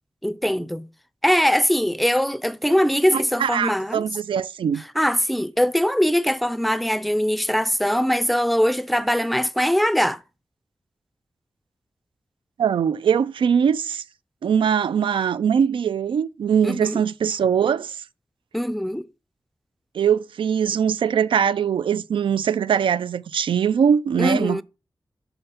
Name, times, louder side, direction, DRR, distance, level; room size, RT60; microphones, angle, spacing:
voice 1, 0.2-0.8 1.2-4.0 5.0-10.2 16.6-17.0 18.5-19.1 24.2-24.6, equal, ahead, 0.3 m, -21 dB
voice 2, 3.1-4.8 12.6-14.0 14.4-18.0 19.9-24.6, right 7 dB, 90° right, 0.4 m, -21 dB
6.8 x 4.3 x 5.6 m
wide cardioid pair, 160°, 8 cm